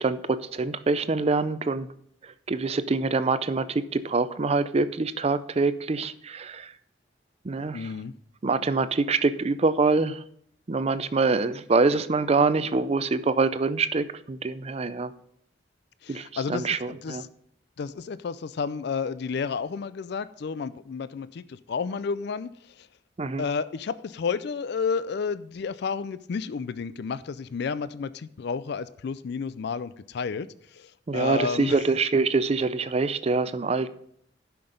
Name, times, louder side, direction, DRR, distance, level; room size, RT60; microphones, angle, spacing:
voice 1, 0.0-1.9 2.5-6.7 7.4-7.9 8.4-10.2 10.7-15.1 16.1-17.2 23.2-23.4 31.1-33.9, right 3 dB, 35° right, 13 dB, 0.5 m, -25 dB
voice 2, 7.7-8.1 16.0-17.3 17.8-22.9 23.4-31.9, left 5 dB, 60° left, 15 dB, 0.4 m, -31 dB
11.0 x 5.9 x 5.1 m, 0.68 s
head